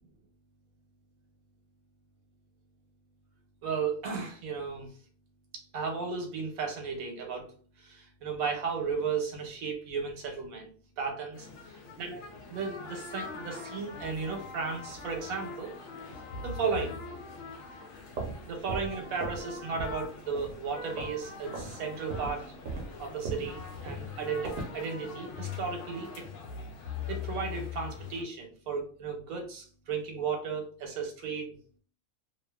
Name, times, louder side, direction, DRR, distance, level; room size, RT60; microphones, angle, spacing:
voice 1, 3.6-4.9 5.5-7.5 7.8-10.7 11.0-11.5 12.0-15.7 16.4-17.0 18.5-22.4 23.0-26.1 27.1-31.5, right 5 dB, 80° right, 3 dB, 1.2 m, -34 dB
sound 1, 11.3-28.2, left 5 dB, 70° left, 0.9 m, -42 dB
sound 2, 17.9-19.5 19.7-20.1 20.3-21.2 21.5-21.7 22.1-24.8, right 3 dB, 65° right, 0.9 m, -38 dB
2.6 x 2.4 x 2.3 m, 0.43 s
omnidirectional pair, 1.5 m